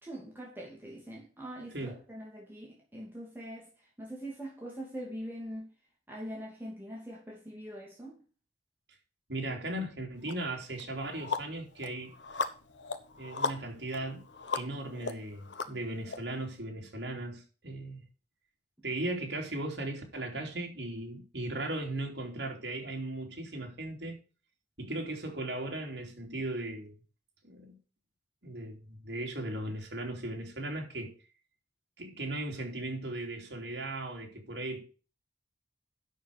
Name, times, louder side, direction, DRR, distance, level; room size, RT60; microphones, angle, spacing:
voice 1, 0.0-3.7 4.0-5.7 6.1-8.2, equal, 10° right, 2.7 m, -43 dB
voice 2, 9.3-12.1 13.2-14.2 14.5-18.0 18.8-24.2 24.8-26.9 27.4-27.8 28.4-31.2 32.0-34.8, right 1 dB, 70° right, 3.3 m, -37 dB
sound 1, 10.3-10.4 10.8-16.2, left 4 dB, 90° left, 1.1 m, -37 dB
9.1 x 6.6 x 6.8 m
head